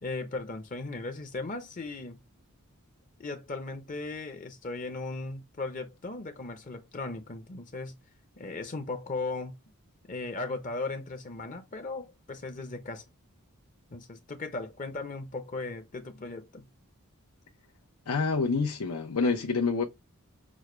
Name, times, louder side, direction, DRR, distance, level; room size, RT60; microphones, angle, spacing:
voice 1, 0.0-2.2 3.2-8.0 8.4-9.5 10.1-13.0 13.9-16.6, left 3 dB, 35° left, 0.6 m, -37 dB
voice 2, 18.1-19.9, left 4 dB, 85° left, 0.7 m, -27 dB
6.2 x 2.2 x 3.2 m
head